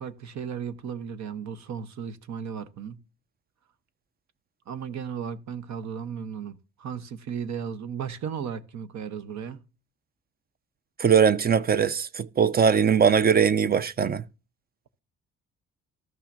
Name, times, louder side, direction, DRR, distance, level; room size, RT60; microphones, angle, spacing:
voice 1, 0.0-3.0 4.7-9.7, right 7 dB, 65° right, 1.1 m, -35 dB
voice 2, 11.0-14.2, right 7 dB, 30° right, 0.5 m, -21 dB
14.0 x 5.7 x 2.6 m
cardioid pair, 90°, 30 cm